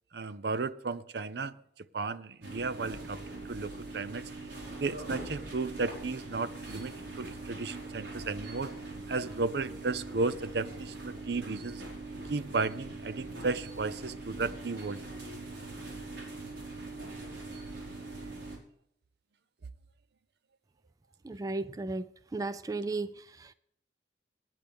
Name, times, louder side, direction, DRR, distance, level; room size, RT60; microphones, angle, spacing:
voice 1, 0.1-1.6 1.9-4.3 4.8-8.7 9.1-11.8 12.3-15.0, right 3 dB, 70° right, 0.6 m, -34 dB
sound 1, 2.4-18.6, right 2 dB, 85° right, 4.7 m, -42 dB
voice 2, 21.2-23.5, right 3 dB, 20° right, 0.3 m, -35 dB
18.5 x 9.1 x 3.6 m
head